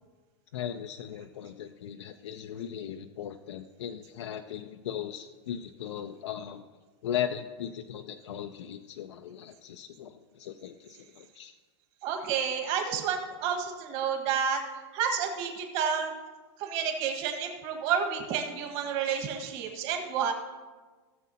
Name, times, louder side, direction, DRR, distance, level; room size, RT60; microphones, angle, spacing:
voice 1, 0.5-6.6 7.0-11.5, left 9 dB, 85° left, 6 dB, 0.5 m, -38 dB
voice 2, 12.0-14.6 14.9-16.1 16.6-20.3, right 7 dB, 45° right, 3 dB, 1.6 m, -30 dB
17.0 x 7.3 x 2.8 m, 1.4 s
supercardioid pair, 145°, 14 cm